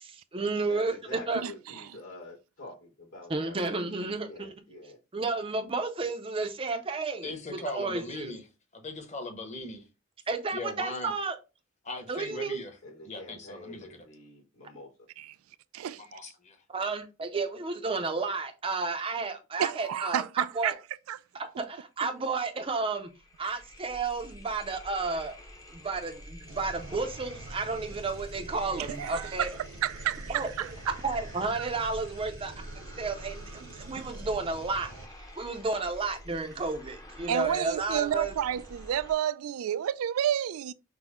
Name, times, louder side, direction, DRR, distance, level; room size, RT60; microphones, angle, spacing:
voice 1, 0.0-1.4 3.3-4.5 5.1-8.3 10.3-11.3 12.1-12.6 16.7-20.7 21.3-23.1 23.4-25.3 25.7-29.5 30.3-30.5 31.0-34.9 35.4-38.3, right 3 dB, 25° right, 0.5 m, -32 dB
voice 2, 0.5-5.0 12.8-14.9, left 1 dB, 75° left, 2.6 m, -47 dB
voice 3, 1.4-2.0 15.2-15.4 15.7-16.0 19.6-20.7 21.1-21.2 22.0-22.1 28.7-29.5 29.8-30.9 31.5-31.6 33.9-34.1 37.3-40.7, right 10 dB, 90° right, 0.3 m, -30 dB
voice 4, 7.2-8.5 8.7-9.8 10.5-11.1 11.8-12.8 13.0-14.1 16.0-16.6, left 2 dB, 35° left, 1.0 m, -39 dB
sound 1, 22.1-22.2 22.5-39.1, left 1 dB, 15° left, 0.7 m, -49 dB
sound 2, 26.5-35.1, right 2 dB, 75° right, 0.8 m, -45 dB
6.0 x 2.1 x 3.5 m
head